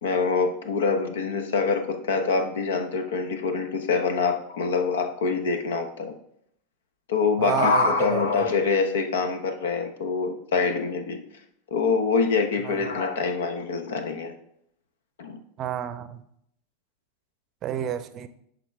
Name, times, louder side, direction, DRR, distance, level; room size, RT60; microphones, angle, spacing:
voice 1, 0.0-6.2 7.1-11.2 11.7-14.3 15.2-15.4, left 4 dB, 80° left, 0.8 m, -25 dB
voice 2, 7.4-8.3 12.6-12.9 15.6-16.2 17.6-18.3, right 9 dB, 40° right, 0.5 m, -30 dB
11.0 x 3.8 x 3.5 m
hypercardioid pair, 105°, 0 cm